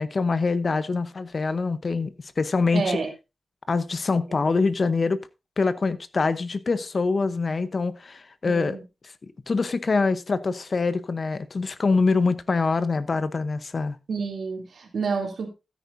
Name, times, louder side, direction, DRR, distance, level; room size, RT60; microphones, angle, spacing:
voice 1, 0.0-3.0 3.7-5.2 5.6-8.8 9.5-14.0, left 4 dB, 45° left, 0.8 m, -24 dB
voice 2, 2.7-3.1 8.4-8.9 14.1-15.5, right 5 dB, 70° right, 2.9 m, -29 dB
15.0 x 9.3 x 2.6 m
wide cardioid pair, 120°, 0 cm